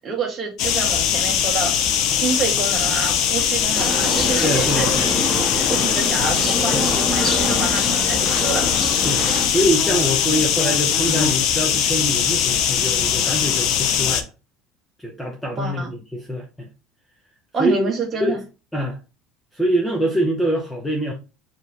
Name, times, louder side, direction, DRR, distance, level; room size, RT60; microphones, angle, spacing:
voice 1, 0.0-1.7 2.1-4.9 5.5-8.8 15.6-15.9 17.5-18.4, right 4 dB, 25° right, 1.3 m, -27 dB
sound 1, 0.6-14.2, left 9 dB, 50° left, 0.5 m, -21 dB
sound 2, 3.7-9.5, left 1 dB, 30° left, 1.1 m, -25 dB
voice 2, 4.4-5.1 6.7-6.9 9.0-9.2 9.5-14.3 15.0-16.7 17.6-17.9 18.2-18.4 18.7-19.0 19.5-21.1, right 1 dB, 5° left, 0.6 m, -24 dB
4.8 x 2.9 x 3.2 m
cardioid pair, 165°, 0 cm